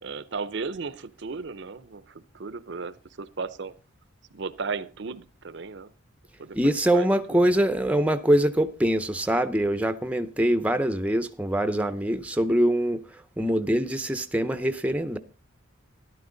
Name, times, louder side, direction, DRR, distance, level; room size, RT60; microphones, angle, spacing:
voice 1, 0.0-3.7 4.3-5.9 6.4-6.6 6.9-7.4, right 4 dB, 55° right, 0.6 m, -35 dB
voice 2, 6.5-15.2, right 1 dB, 5° right, 0.6 m, -24 dB
13.0 x 11.5 x 3.9 m
head